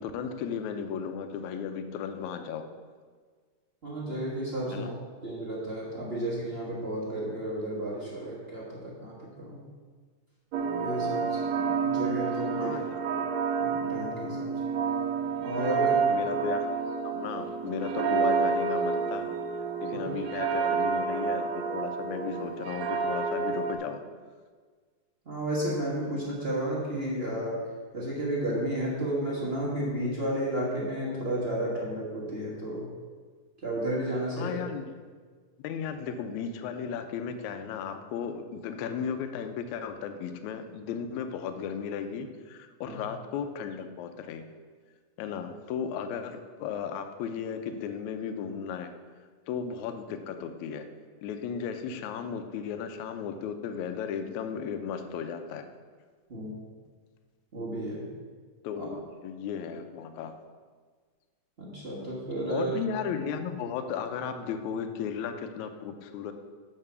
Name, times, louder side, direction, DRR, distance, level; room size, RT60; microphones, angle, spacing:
voice 1, 0.0-2.6 4.7-4.9 12.6-13.0 16.1-16.8 17.0-19.3 19.8-24.0 34.4-34.9 35.6-44.4 45.2-48.9 49.5-50.9 51.2-55.6 58.6-60.3 62.5-66.3, left 7 dB, 75° left, 7 dB, 1.8 m, -35 dB
voice 2, 3.8-4.9 5.2-9.6 10.7-12.8 13.1-13.2 13.6-14.5 15.4-16.0 19.9-20.0 25.2-27.6 27.9-32.9 33.6-34.6 42.8-43.0 56.3-56.5 57.5-58.1 58.8-58.9 61.6-62.7, right 1 dB, 55° right, -6 dB, 0.6 m, -32 dB
sound 1, 10.5-23.7, right 5 dB, 75° right, 1.6 m, -29 dB
7.3 x 5.7 x 6.9 m, 1.5 s
omnidirectional pair, 3.8 m